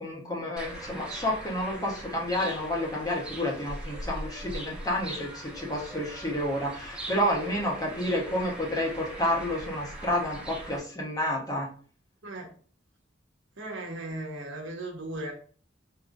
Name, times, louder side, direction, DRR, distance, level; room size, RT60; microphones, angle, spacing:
voice 1, 0.0-11.7, left 1 dB, 20° left, -2 dB, 1.0 m, -30 dB
sound 1, 0.6-10.8, right 1 dB, 5° right, 1.2 m, -41 dB
voice 2, 12.2-12.5 13.6-15.3, right 1 dB, 75° right, 1 dB, 1.1 m, -37 dB
4.9 x 2.9 x 2.5 m, 0.43 s
head